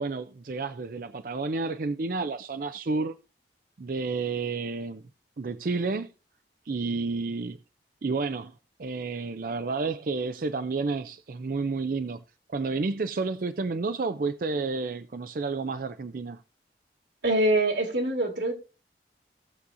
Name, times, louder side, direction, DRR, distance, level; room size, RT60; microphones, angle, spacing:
voice 1, 0.0-3.2 3.8-5.0 5.4-6.1 6.7-7.6 8.0-8.5 8.8-12.2 12.5-16.4, right 4 dB, 50° right, 0.4 m, -30 dB
voice 2, 17.2-18.5, right 1 dB, 80° right, 2.5 m, -24 dB
17.5 x 7.0 x 2.6 m
head